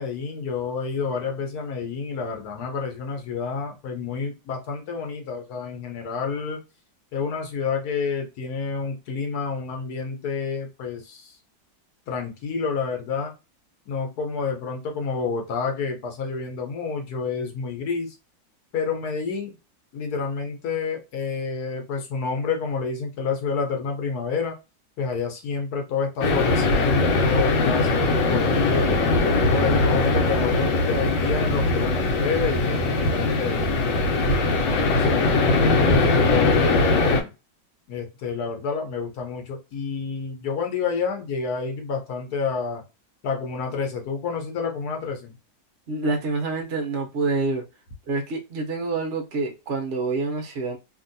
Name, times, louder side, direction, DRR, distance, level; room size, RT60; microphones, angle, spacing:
voice 1, 0.0-6.6 7.1-11.4 12.1-13.3 13.9-18.1 18.7-19.5 19.9-24.6 25.0-29.0 29.5-35.1 35.9-37.3 37.9-42.8 43.2-45.4, left 5 dB, 65° left, 1.2 m, -29 dB
sound 1, 26.2-37.2, left 3 dB, 80° left, 1.4 m, -21 dB
voice 2, 45.9-47.6 48.1-50.8, right 3 dB, 65° right, 0.6 m, -27 dB
2.9 x 2.6 x 2.6 m
omnidirectional pair, 2.0 m